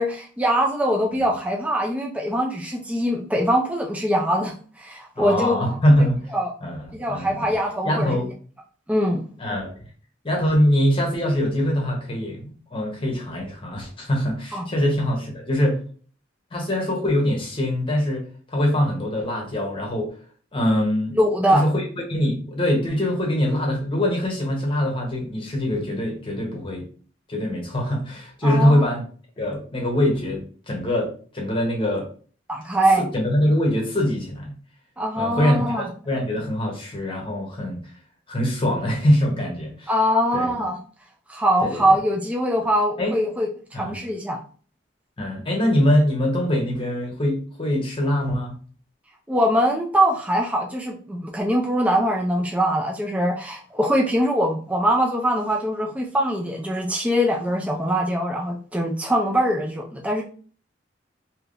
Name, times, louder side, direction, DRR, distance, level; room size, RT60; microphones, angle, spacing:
voice 1, 0.0-5.8 6.3-6.5 6.9-8.2 8.9-9.2 14.5-14.7 21.2-21.6 28.4-28.9 32.5-33.0 35.0-35.9 39.9-40.8 41.3-44.4 49.3-60.2, equal, 5° right, -1 dB, 0.4 m, -22 dB
voice 2, 5.2-6.2 6.6-7.5 7.8-8.3 9.4-9.9 10.2-15.8 16.5-18.2 18.5-20.1 20.5-21.2 21.5-21.8 22.1-26.9 27.3-29.0 29.4-32.1 33.0-34.5 35.2-37.9 38.3-39.9 40.3-40.5 41.6-41.8 43.0-43.2 43.7-43.9 45.2-48.6, left 1 dB, 30° left, 0 dB, 0.9 m, -23 dB
3.4 x 2.8 x 2.5 m, 0.42 s
head